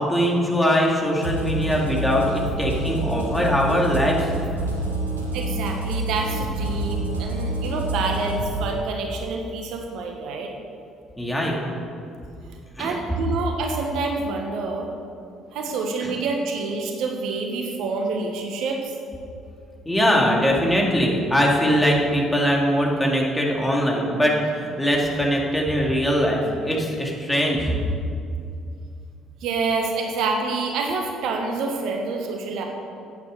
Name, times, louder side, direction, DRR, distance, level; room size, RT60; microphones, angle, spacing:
voice 1, 0.0-4.3 11.2-11.8 12.8-12.9 16.0-16.1 19.8-27.8, equal, 10° left, -2 dB, 3.0 m, -21 dB
sound 1, 1.2-8.6, right 2 dB, 90° right, 1.3 m, -28 dB
voice 2, 5.3-10.5 12.8-14.9 15.5-18.9 29.4-32.6, right 3 dB, 60° right, 3 dB, 1.3 m, -27 dB
11.5 x 9.1 x 6.8 m, 2.5 s
figure-of-eight pair, 50°, 0 cm